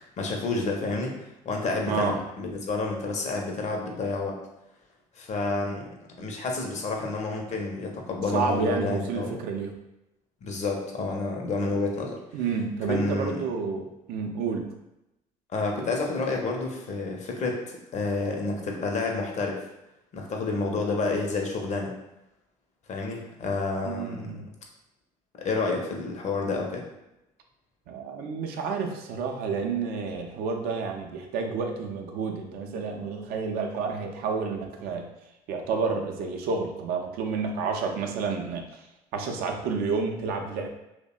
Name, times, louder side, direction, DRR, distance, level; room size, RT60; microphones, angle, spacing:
voice 1, 0.2-1.1 1.4-4.4 5.2-5.9 6.2-9.4 10.4-12.2 12.9-13.4 15.5-17.6 17.9-19.6 20.1-21.9 22.9-24.3 25.4-26.8, left 3 dB, 40° left, 1 dB, 0.6 m, -29 dB
voice 2, 1.9-2.2 8.3-9.8 12.3-14.7 23.8-24.5 27.9-35.1 35.5-38.8 39.1-40.7, right 5 dB, 60° right, 3 dB, 0.4 m, -30 dB
2.6 x 2.0 x 2.3 m, 0.89 s
hypercardioid pair, 60°, 18 cm